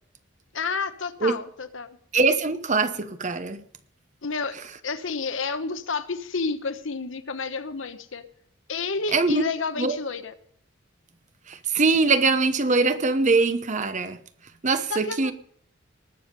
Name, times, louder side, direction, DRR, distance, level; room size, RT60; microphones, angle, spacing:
voice 1, 0.5-1.9 4.2-4.6 4.8-8.2 8.7-10.3 14.9-15.3, left 4 dB, 70° left, 1.1 m, -30 dB
voice 2, 2.1-3.6 9.1-9.4 9.8-10.0 11.5-14.2 14.6-15.3, right 3 dB, 35° right, 0.9 m, -22 dB
19.5 x 7.2 x 5.3 m
head